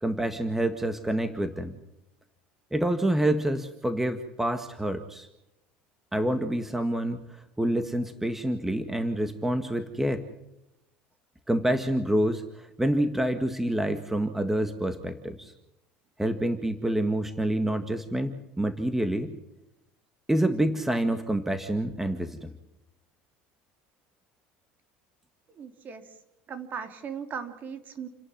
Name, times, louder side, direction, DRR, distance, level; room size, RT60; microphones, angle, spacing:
voice 1, 0.0-1.8 2.7-5.3 6.1-7.2 7.6-10.3 11.5-15.5 16.2-19.3 20.3-22.5, right 1 dB, 5° right, 9 dB, 1.8 m, -27 dB
voice 2, 25.6-26.1 26.5-28.1, right 6 dB, 40° right, 8 dB, 3.4 m, -38 dB
29.5 x 11.0 x 9.1 m, 0.90 s
supercardioid pair, 95°, 4 cm